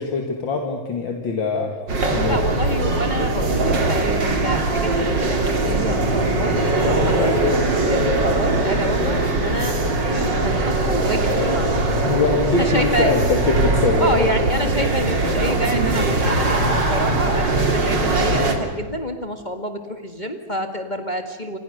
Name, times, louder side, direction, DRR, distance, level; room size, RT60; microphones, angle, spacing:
voice 1, 0.0-1.7 2.1-2.4 12.0-14.3, left 4 dB, 70° left, 2 dB, 2.9 m, -22 dB
sound 1, 1.9-18.5, right 2 dB, 60° right, 3.6 m, -20 dB
voice 2, 2.0-7.4 7.8-12.0 12.5-13.2 14.0-21.6, equal, 25° left, 6 dB, 1.8 m, -28 dB
29.0 x 27.0 x 6.7 m, 1.4 s
omnidirectional pair, 2.2 m